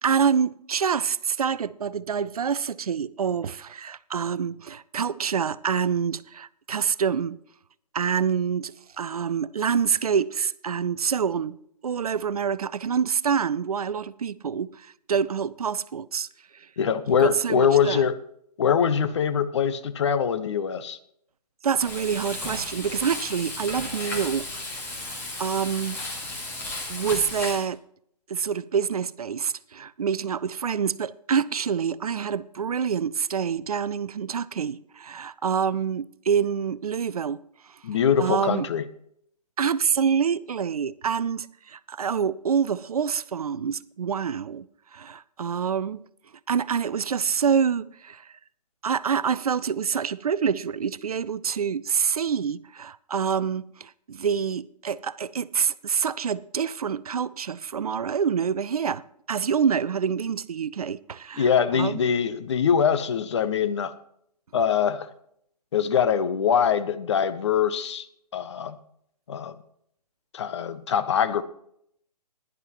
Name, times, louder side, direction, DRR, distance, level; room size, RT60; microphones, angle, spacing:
voice 1, 0.0-7.4 7.9-11.6 11.8-16.7 17.2-18.0 21.6-24.5 25.1-26.0 26.9-27.8 28.3-37.4 37.6-37.8 38.2-38.7 39.6-44.7 44.9-46.0 46.5-48.4 48.8-62.0, right 7 dB, 60° right, 0.5 m, -26 dB
voice 2, 16.8-18.1 18.6-21.0 37.8-38.8 61.4-63.9 64.5-65.1 65.7-68.1 68.3-68.8 69.3-69.5 70.3-71.4, left 7 dB, 45° left, 0.7 m, -23 dB
Frying (food), 21.7-27.7, left 2 dB, 10° left, 1.9 m, -34 dB
16.0 x 11.0 x 3.0 m
figure-of-eight pair, 140°, 21 cm